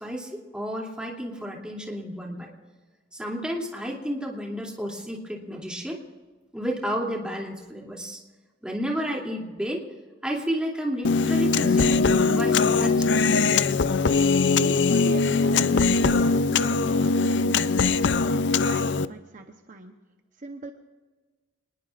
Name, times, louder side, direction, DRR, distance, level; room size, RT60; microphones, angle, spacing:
voice 1, 0.0-2.5 3.1-6.0 6.5-8.2 8.6-9.9 10.2-13.4, equal, 5° right, -2 dB, 2.8 m, -31 dB
Human voice, 11.0-19.1, left 4 dB, 70° left, 0.5 m, -21 dB
voice 2, 14.5-18.0 18.3-19.9 20.4-20.7, right 2 dB, 45° right, 4 dB, 1.0 m, -40 dB
27.0 x 20.5 x 2.5 m, 1.4 s
head